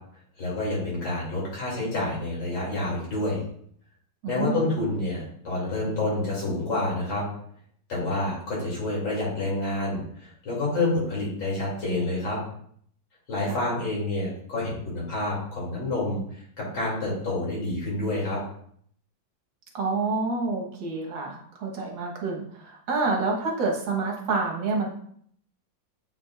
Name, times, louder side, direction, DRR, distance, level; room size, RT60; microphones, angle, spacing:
voice 1, 0.4-3.4 4.3-7.2 7.9-12.4 13.3-16.2 16.6-18.4, left 2 dB, 75° left, -5 dB, 3.3 m, -28 dB
voice 2, 4.2-4.6 13.5-13.6 19.7-24.9, right 3 dB, 70° right, 0 dB, 1.8 m, -28 dB
8.2 x 4.8 x 2.4 m, 0.63 s
omnidirectional pair, 2.1 m